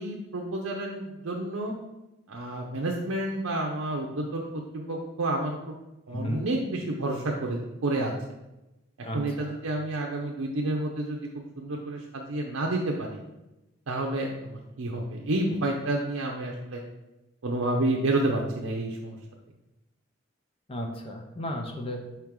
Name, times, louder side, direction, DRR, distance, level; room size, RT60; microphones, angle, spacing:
voice 1, 0.0-1.7 2.3-5.7 6.1-8.1 9.0-11.2 11.6-13.2 13.9-16.8 17.4-19.2, right 2 dB, 85° right, -1 dB, 0.6 m, -30 dB
voice 2, 6.1-6.5 9.0-9.6 20.7-22.0, left 1 dB, 25° left, 3 dB, 0.6 m, -34 dB
5.6 x 4.5 x 3.7 m, 0.98 s
head